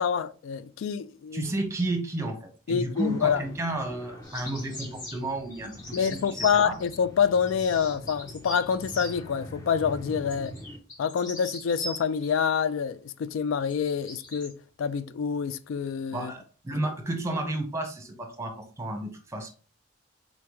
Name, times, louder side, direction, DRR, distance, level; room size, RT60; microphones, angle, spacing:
voice 1, 0.0-1.4 2.7-3.4 5.9-10.6 11.0-16.3, left 7 dB, 80° left, 0.3 m, -27 dB
voice 2, 1.3-6.8 16.1-19.5, right 1 dB, 15° right, 0.9 m, -32 dB
sound 1, 2.9-10.8, equal, 15° left, 0.7 m, -44 dB
sound 2, 4.2-9.2 10.3-12.3 13.5-14.5, left 1 dB, 40° left, 1.6 m, -41 dB
4.0 x 3.4 x 3.0 m
head